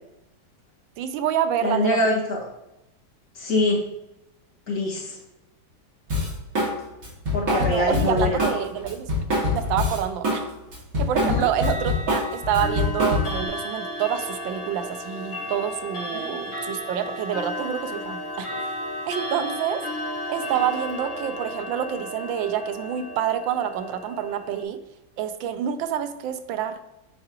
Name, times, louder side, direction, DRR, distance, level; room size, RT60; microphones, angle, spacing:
voice 1, 1.0-2.0 7.5-9.0 9.5-10.5 11.0-18.5 19.0-19.8 20.3-24.8 25.2-26.8, right 9 dB, 85° right, 10 dB, 1.3 m, -27 dB
voice 2, 1.6-2.4 3.3-3.9 4.7-5.2 7.3-8.3 11.2-11.5 16.1-16.3, left 2 dB, 55° left, -5 dB, 2.2 m, -24 dB
Drum kit, 6.1-6.7 7.0-10.4 10.7-13.5, left 2 dB, 45° right, 2.4 m, -24 dB
Clock, 11.5-24.6, left 1 dB, 80° left, 2.5 m, -34 dB
8.7 x 4.6 x 2.9 m, 0.91 s
omnidirectional pair, 2.0 m